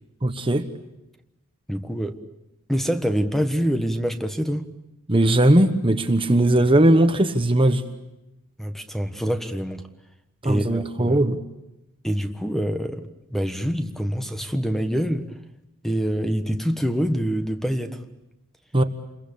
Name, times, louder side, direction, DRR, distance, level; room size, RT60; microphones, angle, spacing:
voice 1, 0.2-0.7 5.1-7.8 10.4-11.4 18.7-18.8, right 1 dB, 25° right, 1.2 m, -18 dB
voice 2, 1.7-2.2 2.7-4.7 8.6-9.8 10.4-11.2 12.0-13.0 13.3-15.3 15.8-18.0, equal, ahead, 1.4 m, -25 dB
28.5 x 22.5 x 8.7 m
head